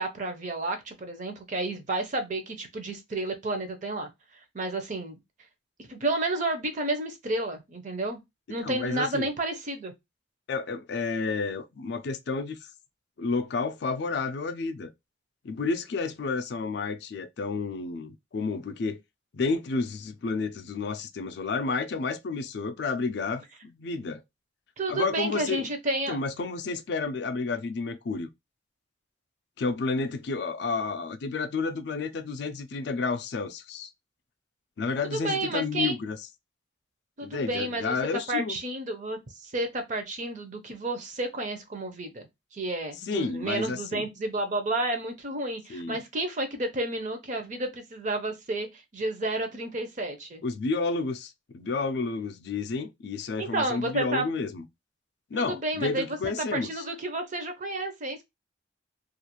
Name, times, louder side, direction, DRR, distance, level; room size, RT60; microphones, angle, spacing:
voice 1, 0.0-4.1 4.5-5.1 5.9-8.2 8.5-9.9 24.8-26.2 35.1-36.0 37.2-38.0 38.3-42.3 42.5-48.7 48.9-50.4 53.4-54.3 55.3-58.2, right 2 dB, 40° right, 0.6 m, -31 dB
voice 2, 8.5-9.3 10.5-12.7 13.2-14.9 15.4-19.0 19.3-24.2 24.9-25.7 26.1-28.3 29.6-33.9 34.8-36.2 37.2-38.6 43.0-44.1 45.7-46.0 50.4-54.7 55.3-56.9, left 4 dB, 60° left, 0.4 m, -31 dB
2.4 x 2.3 x 2.9 m
head